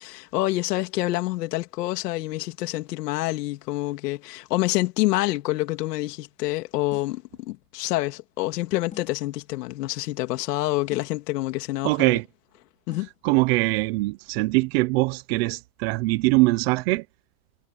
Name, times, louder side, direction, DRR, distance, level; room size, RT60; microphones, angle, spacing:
voice 1, 0.0-12.2 12.9-13.1, left 18 dB, 75° left, 2.8 m, -27 dB
sound 1, 6.9-7.3 8.9-9.3 10.9-11.3 12.9-13.3, left 6 dB, 15° left, 4.7 m, -47 dB
voice 2, 11.8-12.2 13.2-17.0, right 23 dB, 40° right, 0.6 m, -22 dB
supercardioid pair, 165°, 48 cm